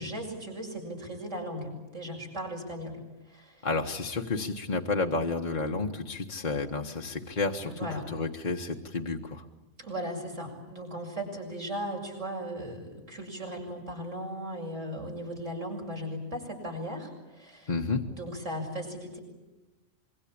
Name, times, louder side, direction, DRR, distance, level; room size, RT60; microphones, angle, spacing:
voice 1, 0.0-3.7 7.6-8.1 9.8-17.7 18.1-19.2, equal, 65° right, 0 dB, 7.3 m, -37 dB
voice 2, 3.6-9.4 17.7-18.0, left 3 dB, 35° left, 1 dB, 1.4 m, -31 dB
26.0 x 23.0 x 8.7 m, 1.0 s
omnidirectional pair, 1.3 m